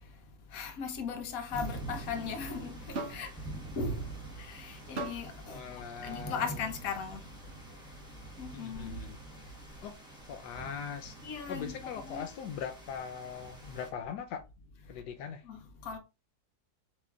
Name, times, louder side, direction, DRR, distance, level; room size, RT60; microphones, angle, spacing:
voice 1, 0.5-3.3 3.8-5.6 5.9-7.3 8.4-9.0 11.2-11.8 12.0-12.3 15.4-16.0, left 5 dB, 60° left, 1.2 m, -38 dB
sound 1, 1.5-13.9, right 2 dB, 5° right, 1.2 m, -46 dB
sound 2, 2.9-3.3 5.0-5.3 6.3-6.5, right 3 dB, 50° right, 0.9 m, -38 dB
voice 2, 5.5-6.6 8.5-9.2 9.8-10.0 10.3-11.2 11.5-14.4 14.9-15.4, left 7 dB, 80° left, 1.2 m, -41 dB
7.2 x 3.0 x 2.4 m
omnidirectional pair, 1.8 m